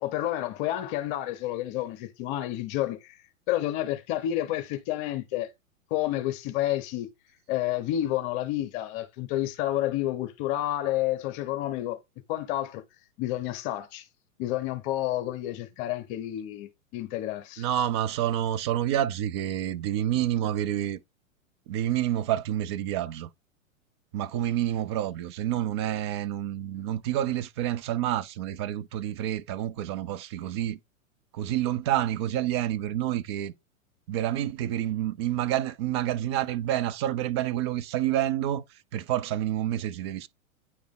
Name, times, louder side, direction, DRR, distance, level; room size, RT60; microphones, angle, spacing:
voice 1, 0.0-3.2 3.5-5.5 5.9-7.1 7.5-12.0 12.3-12.8 13.2-14.1 14.4-17.7, left 14 dB, 35° left, 0.9 m, -30 dB
voice 2, 17.6-21.0 21.7-23.3 24.1-30.8 31.3-33.5 34.1-38.6 38.9-40.3, right 12 dB, 25° right, 0.3 m, -28 dB
9.5 x 3.4 x 3.7 m
figure-of-eight pair, 105°, 41 cm